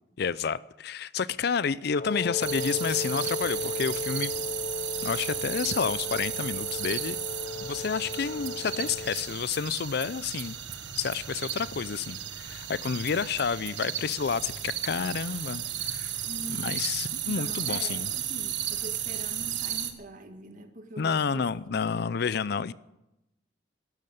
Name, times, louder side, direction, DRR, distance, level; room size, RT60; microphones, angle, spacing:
voice 1, 0.2-4.3 5.0-7.2 7.6-10.6 11.0-16.1 16.5-18.1 21.0-22.7, left 6 dB, 60° left, 0.5 m, -30 dB
Wind instrument woodwind instrument, 2.0-9.3, left 3 dB, 40° left, 1.0 m, -36 dB
sound 1, 2.4-19.9, right 10 dB, 75° right, 1.4 m, -34 dB
voice 2, 16.3-16.6 17.2-21.4 21.7-22.3, right 2 dB, 45° right, 1.7 m, -43 dB
12.0 x 12.0 x 9.1 m
head